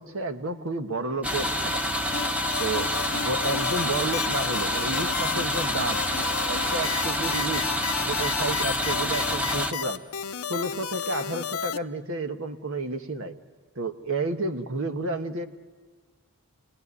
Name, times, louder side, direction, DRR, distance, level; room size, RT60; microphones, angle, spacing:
voice 1, 0.0-1.8 2.6-6.1 6.5-7.7 8.0-10.0 10.5-13.4 13.8-15.5, right 2 dB, 65° right, 7 dB, 1.5 m, -31 dB
sound 1, 1.2-9.7, left 1 dB, 5° right, 1.2 m, -27 dB
sound 2, 2.1-11.8, left 7 dB, 75° left, 0.7 m, -33 dB
28.0 x 19.5 x 9.8 m, 1.5 s
head